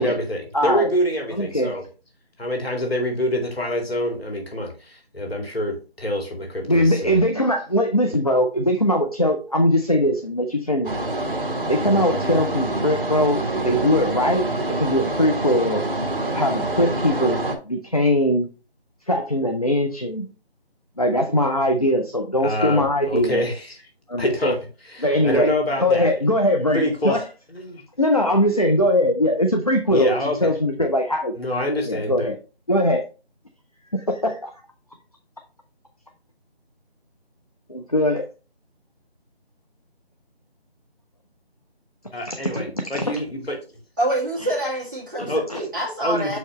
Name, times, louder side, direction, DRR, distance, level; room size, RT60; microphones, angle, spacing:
voice 1, 0.0-1.8 2.4-7.2 22.4-23.8 24.2-24.5 24.8-26.1 26.7-27.2 27.5-27.8 29.9-30.4 30.8-30.9 31.3-32.3 42.1-43.6 45.3-45.4 46.0-46.4, equal, 70° left, 2 dB, 2.4 m, -26 dB
voice 2, 0.5-0.9 1.4-1.7 6.6-10.9 11.6-15.8 16.3-18.5 19.1-20.3 21.0-23.4 24.1-24.6 25.0-25.5 25.8-27.2 28.0-30.1 30.4-31.3 31.9-32.4 32.7-33.0 33.9-34.5 37.7-38.3 42.3-42.6 42.9-43.0 45.2-45.6, left 1 dB, 35° left, 3 dB, 0.5 m, -21 dB
sound 1, 10.8-17.6, right 2 dB, 55° right, 1.3 m, -26 dB
voice 3, 44.0-46.4, right 1 dB, 20° right, -7 dB, 1.6 m, -26 dB
6.7 x 4.6 x 3.1 m, 0.34 s
figure-of-eight pair, 170°, 32 cm